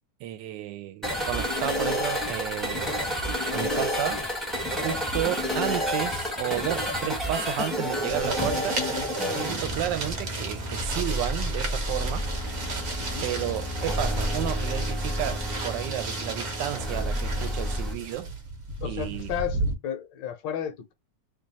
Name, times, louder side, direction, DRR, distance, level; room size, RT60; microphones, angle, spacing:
voice 1, 0.2-3.0 3.5-4.2 4.8-8.8 9.3-12.2 13.2-18.3 18.8-19.3, right 13 dB, 75° right, 1.2 m, -32 dB
sound 1, 1.0-17.9, equal, ahead, 0.5 m, -30 dB
sound 2, 8.1-19.7, right 2 dB, 55° right, 0.9 m, -34 dB
voice 2, 13.0-13.3 18.8-20.9, left 9 dB, 75° left, 1.2 m, -33 dB
3.2 x 2.3 x 3.9 m
omnidirectional pair, 2.0 m